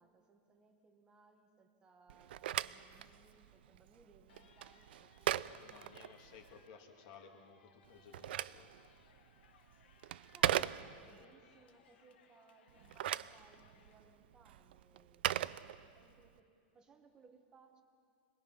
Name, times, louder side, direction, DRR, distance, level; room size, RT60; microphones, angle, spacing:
voice 1, 0.0-6.0 10.3-17.8, right 4 dB, 15° right, 5 dB, 1.3 m, -65 dB
Telephone, 2.1-6.6 7.8-11.3 12.7-16.3, right 12 dB, 70° right, 0.4 m, -39 dB
sound 1, 4.3-13.9, left 7 dB, 75° left, 1.7 m, -68 dB
voice 2, 5.4-8.7, left 6 dB, 40° left, 3 dB, 2.2 m, -58 dB
26.5 x 20.0 x 5.6 m, 2.5 s
supercardioid pair, 175°, 6 cm